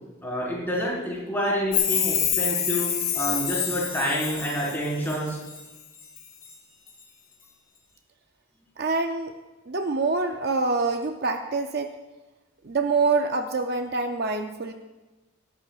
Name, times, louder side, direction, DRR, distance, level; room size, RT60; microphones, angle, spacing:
voice 1, 0.2-2.9 3.1-5.4, equal, 10° left, -6 dB, 4.6 m, -28 dB
Chime, 1.7-5.6 6.0-6.5 6.9-7.0, left 9 dB, 40° left, 2.0 m, -27 dB
voice 2, 8.8-9.4 9.7-11.9 12.6-14.7, right 3 dB, 50° right, 6 dB, 0.6 m, -25 dB
18.0 x 14.0 x 2.5 m, 1.2 s
head